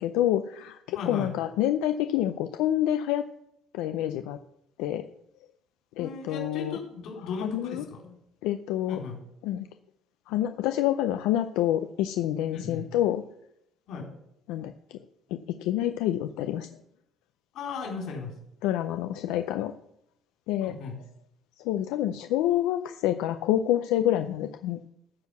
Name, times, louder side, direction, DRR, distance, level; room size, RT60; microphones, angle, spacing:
voice 1, 0.0-3.2 3.7-4.4 4.8-5.0 6.0-6.8 7.4-7.8 8.4-9.0 9.4-9.7 10.3-13.2 14.5-14.7 15.6-16.7 18.6-19.7 20.5-20.8 21.6-24.8, left 12 dB, 90° left, 8 dB, 0.5 m, -27 dB
voice 2, 0.9-1.3 6.0-8.2 8.9-9.2 12.5-12.8 13.9-14.1 17.5-18.3 20.6-21.0, left 4 dB, 55° left, 0 dB, 3.9 m, -36 dB
13.5 x 4.7 x 6.9 m, 0.78 s
cardioid pair, 170°, 0 cm